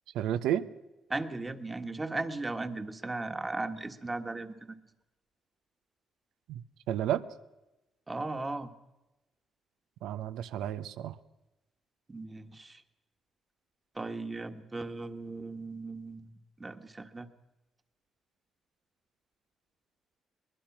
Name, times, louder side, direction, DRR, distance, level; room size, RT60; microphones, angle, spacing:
voice 1, 0.1-0.7 6.5-6.6 6.9-7.2 10.0-11.2, right 11 dB, 90° right, 12 dB, 0.9 m, -31 dB
voice 2, 1.1-4.8 8.1-8.7 12.1-12.8 13.9-16.3 16.6-17.3, right 2 dB, 20° right, 8 dB, 1.5 m, -37 dB
23.0 x 20.5 x 6.1 m, 1.0 s
cardioid pair, 90°, 0 cm